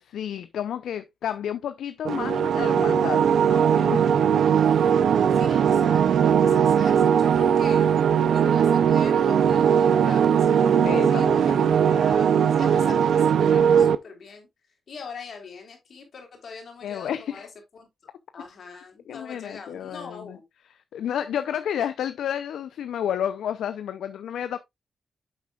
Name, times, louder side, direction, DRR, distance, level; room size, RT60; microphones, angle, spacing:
voice 1, 0.0-4.1 10.6-11.8 16.8-17.5 19.1-20.4 20.9-24.6, left 9 dB, 80° left, 0.5 m, -31 dB
sound 1, 2.0-13.9, right 8 dB, 75° right, 0.5 m, -19 dB
voice 2, 4.4-4.9 5.3-7.9 8.3-14.5 14.9-17.5 17.7-17.9 18.3-20.5, left 5 dB, 65° left, 3.4 m, -42 dB
8.7 x 7.3 x 2.4 m
supercardioid pair, 50°, 0 cm